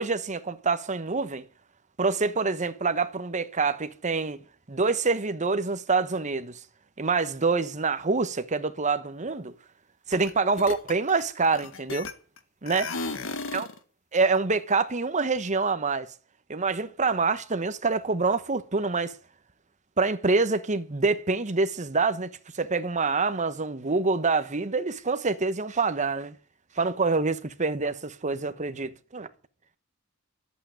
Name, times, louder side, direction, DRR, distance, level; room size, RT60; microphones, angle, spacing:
voice 1, 0.0-1.5 2.0-4.4 4.7-6.6 7.0-9.5 10.1-12.1 12.6-12.9 13.5-13.7 14.1-16.1 16.5-19.1 20.0-26.4 26.8-29.3, right 4 dB, 35° right, 1.1 m, -26 dB
sound 1, 10.1-10.3 10.6-12.4 12.7-13.8, left 3 dB, 65° left, 1.7 m, -34 dB
11.5 x 8.6 x 10.0 m
head